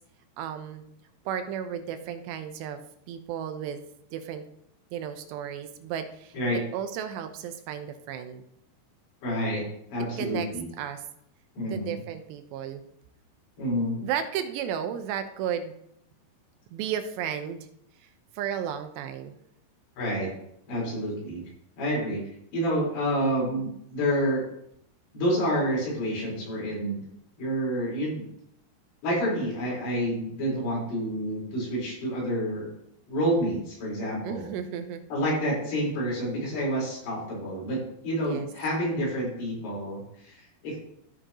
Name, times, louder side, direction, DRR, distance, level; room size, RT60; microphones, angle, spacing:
voice 1, 0.4-0.9 1.3-2.8 3.1-3.8 4.1-4.5 4.9-6.4 6.7-8.4 10.2-10.5 10.8-11.0 11.7-12.8 14.0-15.7 16.7-17.7 18.0-18.1 18.4-19.4 34.2-35.0 38.2-38.5, right 9 dB, 80° right, 8 dB, 2.9 m, -33 dB
voice 2, 9.2-9.6 9.9-10.7 11.6-12.0 13.6-14.0 20.0-20.3 20.7-21.4 21.8-22.2 22.5-24.4 25.1-27.0 27.4-28.3 29.0-32.7 33.1-34.5 35.1-40.8, equal, 80° left, -5 dB, 6.7 m, -28 dB
15.0 x 6.4 x 3.0 m, 0.72 s
omnidirectional pair, 5.0 m